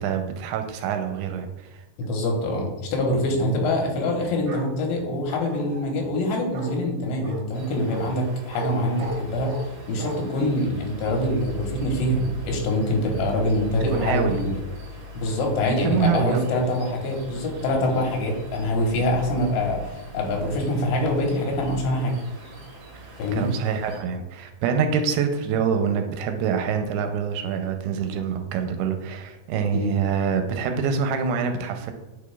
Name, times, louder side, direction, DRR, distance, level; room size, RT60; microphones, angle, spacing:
voice 1, 0.0-1.8 13.9-14.4 15.7-16.4 22.9-23.0 23.3-31.9, right 6 dB, 85° right, 6 dB, 2.5 m, -25 dB
voice 2, 2.0-14.5 15.2-22.1 23.2-23.5 29.7-29.9, left 1 dB, 85° left, 1 dB, 3.3 m, -25 dB
Bark, 4.5-4.7 5.3-5.9 6.5-6.7 7.2-7.4 7.9-8.1 8.5-8.7 9.0-9.6 10.0-10.2, right 2 dB, 60° right, 2.0 m, -35 dB
sound 1, 7.5-24.0, equal, 45° right, 1.6 m, -40 dB
8.4 x 5.0 x 2.3 m, 1.1 s
omnidirectional pair, 4.8 m